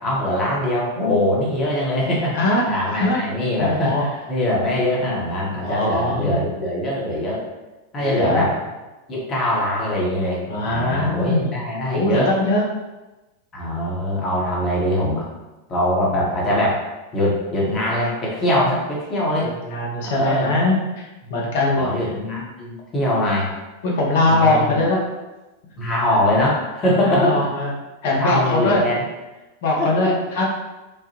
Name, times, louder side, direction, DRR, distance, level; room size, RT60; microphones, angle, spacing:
voice 1, 0.0-2.4 2.7-7.4 7.9-8.5 9.1-12.3 13.5-15.3 15.7-16.8 17.1-19.5 20.1-20.5 21.8-23.5 24.3-24.8 25.8-27.4 28.0-29.0 29.8-30.1, left 1 dB, 30° left, -4 dB, 0.9 m, -22 dB
voice 2, 2.3-2.6 3.0-3.2 3.6-4.0 5.6-6.4 8.0-8.4 10.5-12.6 19.7-21.9 23.8-25.0 27.0-27.7 28.0-28.8 29.6-30.4, left 2 dB, 55° left, -2 dB, 0.7 m, -21 dB
3.1 x 2.2 x 2.8 m, 1.1 s
figure-of-eight pair, 90°, 0 cm